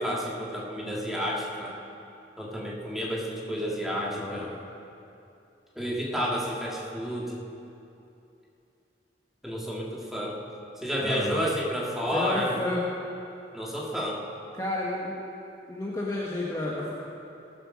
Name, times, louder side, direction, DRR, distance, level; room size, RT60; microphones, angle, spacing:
voice 1, 0.0-1.7 2.4-4.5 5.8-7.4 9.4-10.4 10.8-12.6 13.5-14.2, equal, ahead, -4 dB, 2.0 m, -30 dB
voice 2, 4.0-4.5 11.0-11.5 12.1-12.9 14.5-15.2 15.7-16.9, left 2 dB, 20° left, -5 dB, 1.3 m, -31 dB
19.0 x 7.8 x 6.4 m, 2.8 s
head